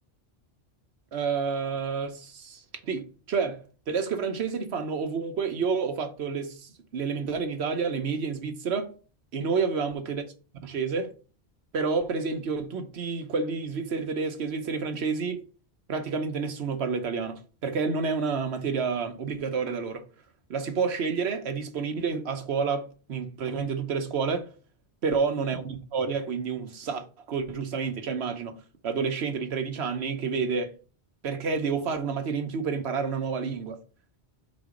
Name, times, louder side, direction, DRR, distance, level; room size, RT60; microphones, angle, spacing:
voice 1, 1.1-8.9 9.3-10.2 10.6-11.1 11.7-15.4 15.9-20.0 20.5-24.5 25.0-28.6 28.8-30.7 31.2-33.8, right 5 dB, 75° right, 1.2 m, -29 dB
5.3 x 3.9 x 5.0 m
omnidirectional pair, 1.1 m